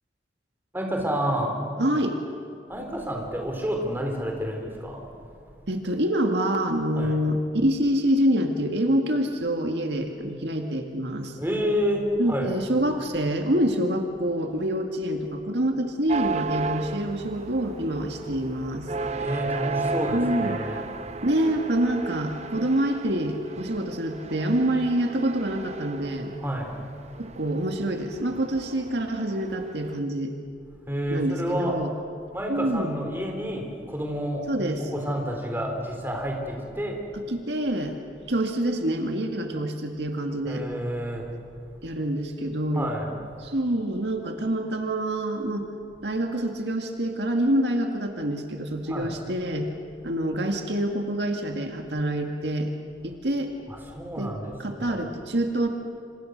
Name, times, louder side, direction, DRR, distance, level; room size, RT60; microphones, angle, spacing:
voice 1, 0.7-1.6 2.7-5.1 5.4-5.5 7.0-7.2 11.4-12.5 19.1-21.3 26.4-27.2 30.7-31.7 32.3-37.2 38.2-38.3 40.5-41.8 42.7-43.5 45.9-46.1 48.9-49.2 50.0-50.2 53.0-53.2 53.7-55.0, equal, 10° right, 1 dB, 4.1 m, -30 dB
voice 2, 1.8-2.2 5.7-11.4 12.2-18.9 20.1-20.6 21.2-26.3 27.2-30.3 31.1-31.9 32.5-33.0 34.5-34.9 37.3-37.9 38.3-40.6 41.8-42.9 43.4-45.7 46.0-49.7 50.0-52.7 53.0-53.5 54.2-54.3 54.6-55.7, right 1 dB, 70° right, 3 dB, 2.1 m, -26 dB
sound 1, 16.1-30.0, right 4 dB, 35° right, 0.8 m, -35 dB
27.0 x 27.0 x 6.6 m, 2.2 s
head